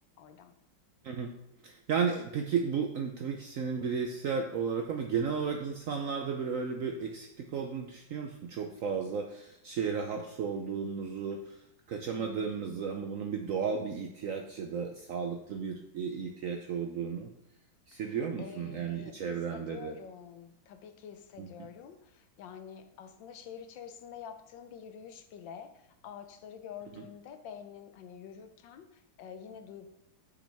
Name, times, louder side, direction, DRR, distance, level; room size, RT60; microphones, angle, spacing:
voice 1, 0.2-0.5 12.1-12.6 17.9-29.9, left 7 dB, 80° left, 8 dB, 1.4 m, -48 dB
voice 2, 1.6-11.6 11.9-17.3 17.9-19.9 21.4-21.5, right 6 dB, 70° right, 4 dB, 0.8 m, -34 dB
8.1 x 6.1 x 3.4 m, 0.80 s
omnidirectional pair, 2.0 m